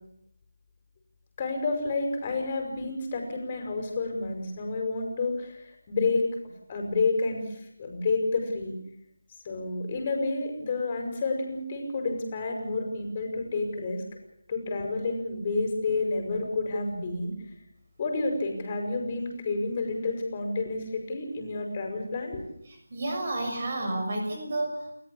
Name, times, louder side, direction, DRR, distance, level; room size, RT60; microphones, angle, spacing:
voice 1, 1.4-6.2 6.7-7.4 7.8-8.8 9.4-14.0 14.5-17.3 18.0-22.4, left 3 dB, 30° left, 3 dB, 5.5 m, -29 dB
voice 2, 22.9-24.9, right 2 dB, 45° right, 3 dB, 6.7 m, -30 dB
29.5 x 14.0 x 8.6 m, 0.75 s
figure-of-eight pair, 165°, 0 cm